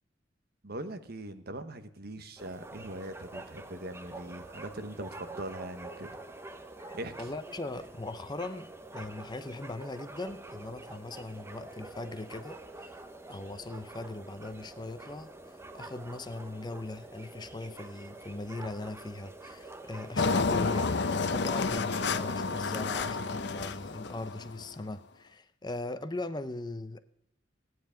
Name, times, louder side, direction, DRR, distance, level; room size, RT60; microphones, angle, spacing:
voice 1, 0.6-6.1 6.9-7.3, right 1 dB, 55° right, 1.1 m, -41 dB
sound 1, 2.4-22.3, right 2 dB, 15° right, 0.9 m, -47 dB
voice 2, 6.8-12.6 13.3-15.3 15.7-21.0 21.3-27.0, left 2 dB, 20° left, 0.6 m, -39 dB
Engine, 20.2-24.7, left 4 dB, 65° left, 0.7 m, -30 dB
16.0 x 9.6 x 5.1 m
head